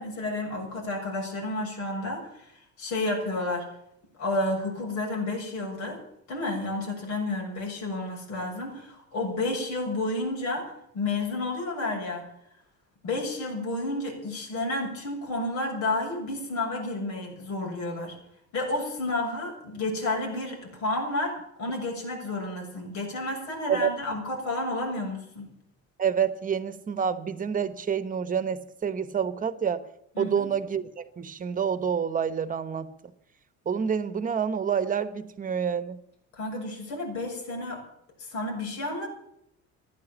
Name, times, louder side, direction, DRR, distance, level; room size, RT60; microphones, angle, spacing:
voice 1, 0.0-2.5 2.8-3.7 4.2-6.0 6.3-12.2 13.0-18.2 18.5-25.5 30.2-30.5 36.3-37.8 38.2-39.1, left 2 dB, 75° left, 1 dB, 7.1 m, -31 dB
voice 2, 26.0-29.8 30.2-32.9 33.7-36.0, right 7 dB, 30° right, 13 dB, 1.1 m, -28 dB
15.5 x 11.5 x 7.3 m, 0.76 s
cardioid pair, 150°, 29 cm